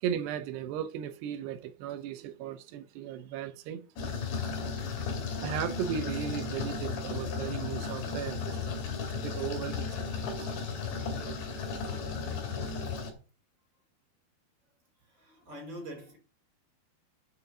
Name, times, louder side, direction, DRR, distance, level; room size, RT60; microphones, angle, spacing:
voice 1, 0.0-3.9 4.4-4.5 5.0-10.7, right 9 dB, 80° right, 2.9 m, -37 dB
sound 1, 4.0-13.1, left 5 dB, 80° left, 4.8 m, -35 dB
voice 2, 15.0-16.2, equal, 25° right, 5.3 m, -44 dB
10.0 x 9.3 x 5.5 m
omnidirectional pair, 4.9 m